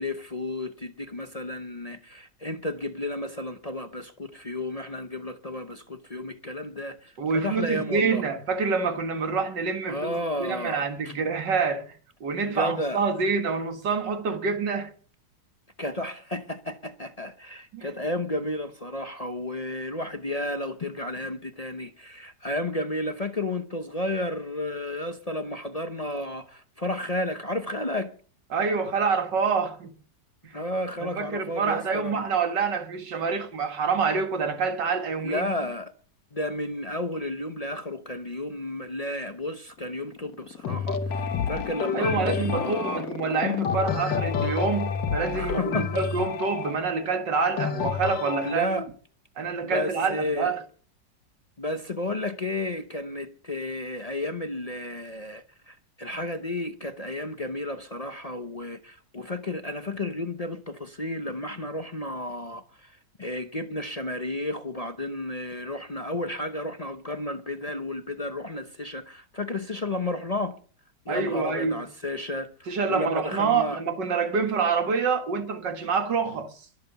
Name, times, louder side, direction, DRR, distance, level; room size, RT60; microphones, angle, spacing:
voice 1, 0.0-8.2 9.9-11.1 12.4-13.0 15.8-28.1 30.5-32.2 35.2-35.9 36.3-43.0 45.3-45.9 48.4-48.9 49.6-50.5 51.6-70.5 71.1-72.5 72.9-73.8, left 1 dB, 35° left, 0.6 m, -32 dB
voice 2, 7.2-14.9 17.7-17.9 28.5-29.9 30.4-30.6 31.0-35.5 41.9-48.7 49.4-50.6 71.1-71.8 72.7-76.7, right 5 dB, 75° right, 2.4 m, -27 dB
sound 1, 39.7-46.3, left 5 dB, 50° left, 2.2 m, -37 dB
sound 2, 40.6-48.6, left 6 dB, 80° left, 1.9 m, -29 dB
22.0 x 7.5 x 6.9 m
omnidirectional pair, 1.9 m